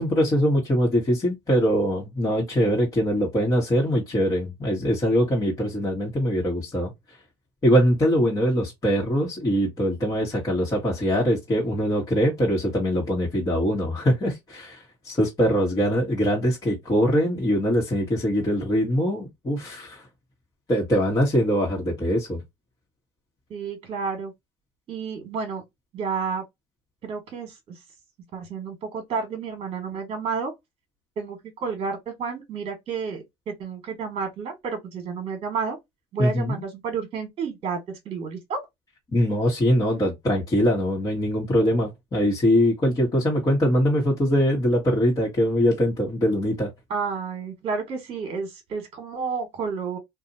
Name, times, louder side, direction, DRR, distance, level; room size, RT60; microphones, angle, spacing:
voice 1, 0.0-6.9 7.6-20.0 20.7-22.4 36.2-36.6 39.1-46.7, equal, 25° left, 1.4 m, -22 dB
voice 2, 23.5-24.3 24.9-25.6 25.9-26.4 27.0-27.8 28.3-30.5 31.2-35.8 36.1-38.6 46.9-50.0, right 5 dB, 45° right, 1.4 m, -31 dB
2.7 x 2.5 x 2.6 m
supercardioid pair, 85°, 14 cm